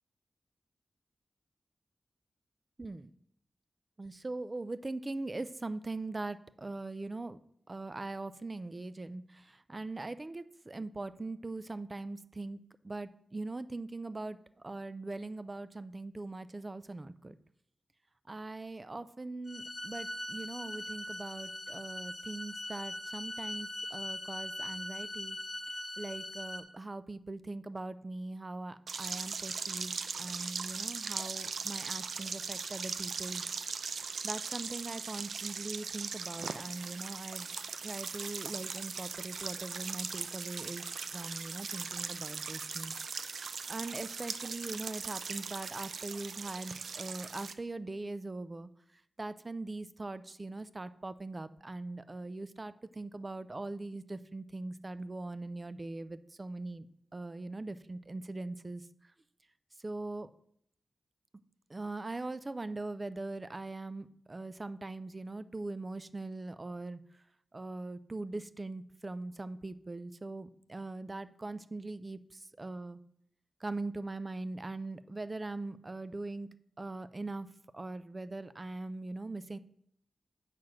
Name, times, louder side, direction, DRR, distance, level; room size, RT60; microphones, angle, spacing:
voice 1, 4.0-7.4 7.7-17.4 18.3-25.4 26.0-33.4 34.2-37.5 37.8-40.8 41.1-43.4 43.7-48.7 49.2-56.9 57.1-58.8 59.8-60.3 61.7-67.0 67.5-73.0 73.6-76.5 76.8-79.6, right 2 dB, 25° right, 14 dB, 0.4 m, -41 dB
sound 1, 19.5-26.6, left 1 dB, 25° left, 1.1 m, -41 dB
sound 2, 28.9-47.5, right 5 dB, 85° right, 0.6 m, -39 dB
6.8 x 5.8 x 7.5 m, 0.68 s
wide cardioid pair, 160°, 0 cm